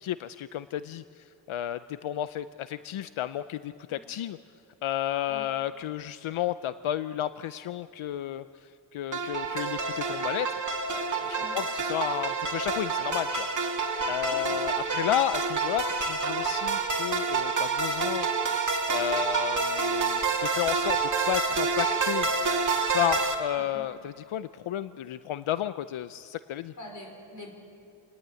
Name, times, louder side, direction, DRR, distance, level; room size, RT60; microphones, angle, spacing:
voice 1, 0.0-4.4 4.8-10.6 10.9-13.5 14.1-18.3 18.9-21.0 21.2-22.3 22.9-26.7, left 11 dB, 85° left, 13 dB, 0.6 m, -32 dB
sound 1, 9.1-23.3, right 4 dB, 40° right, 2.2 m, -28 dB
voice 2, 26.8-27.5, left 1 dB, 40° left, 2 dB, 4.8 m, -44 dB
27.0 x 19.0 x 8.9 m, 2.6 s
wide cardioid pair, 165°, 47 cm